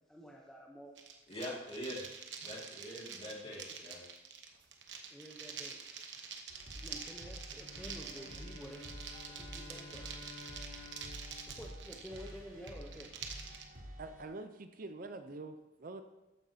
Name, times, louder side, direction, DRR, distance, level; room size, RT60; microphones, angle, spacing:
voice 1, 0.1-1.0 3.4-3.6 5.1-5.8 6.7-8.9 9.3-10.1 11.5-13.1, equal, 5° left, -2 dB, 0.7 m, -50 dB
sound 1, 1.0-13.6, right 6 dB, 60° right, 1.0 m, -47 dB
voice 2, 1.3-2.0 2.4-4.0, left 1 dB, 30° left, -3 dB, 2.2 m, -43 dB
sound 2, 6.5-14.2, equal, 85° right, 3.3 m, -50 dB
Bowed string instrument, 7.6-13.0, left 4 dB, 55° left, 1.8 m, -54 dB
voice 3, 14.0-16.0, right 2 dB, 45° right, 9 dB, 0.5 m, -45 dB
13.5 x 9.6 x 2.8 m, 1.0 s
head